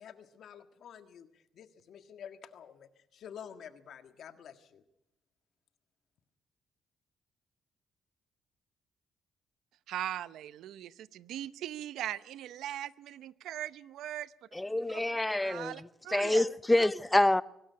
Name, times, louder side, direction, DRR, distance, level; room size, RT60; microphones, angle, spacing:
voice 1, 0.0-4.8, left 8 dB, 65° left, 1.7 m, -49 dB
voice 2, 9.9-14.3 14.9-15.0 15.4-16.5, right 12 dB, 80° right, 0.7 m, -40 dB
voice 3, 14.5-15.7 16.1-17.4, left 1 dB, 10° left, 0.7 m, -26 dB
23.0 x 12.5 x 9.5 m
cardioid pair, 90°, 0 cm